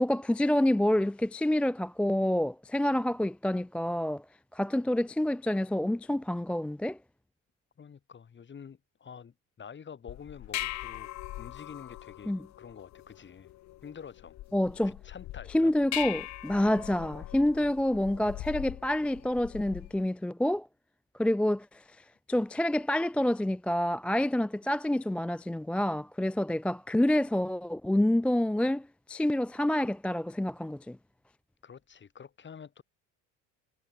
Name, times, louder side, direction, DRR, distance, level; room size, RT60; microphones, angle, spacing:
voice 1, 0.0-4.2 4.5-7.0 12.3-12.4 14.5-15.0 15.5-20.7 21.2-21.8 22.3-31.0, left 1 dB, 5° left, 0.3 m, -28 dB
voice 2, 7.8-11.1 11.4-13.5 13.8-14.4 14.8-15.7 31.6-32.8, left 7 dB, 30° left, 2.2 m, -48 dB
sound 1, 10.1-20.0, left 16 dB, 50° left, 0.7 m, -41 dB
supercardioid pair, 95°, 36 cm